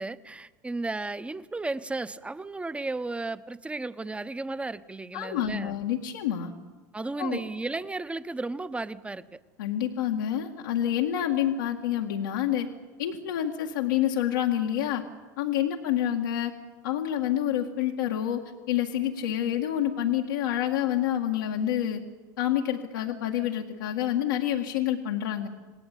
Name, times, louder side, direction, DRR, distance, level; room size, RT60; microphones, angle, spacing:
voice 1, 0.0-5.8 6.9-9.4, right 2 dB, 10° right, 14 dB, 1.1 m, -34 dB
voice 2, 5.1-6.5 7.2-7.4 9.6-12.7 13.0-15.0 15.4-16.5 16.8-18.4 18.7-22.0 22.4-25.5, left 11 dB, 85° left, 0 dB, 2.0 m, -28 dB
27.5 x 19.5 x 8.4 m, 1.3 s
hypercardioid pair, 90°, 10 cm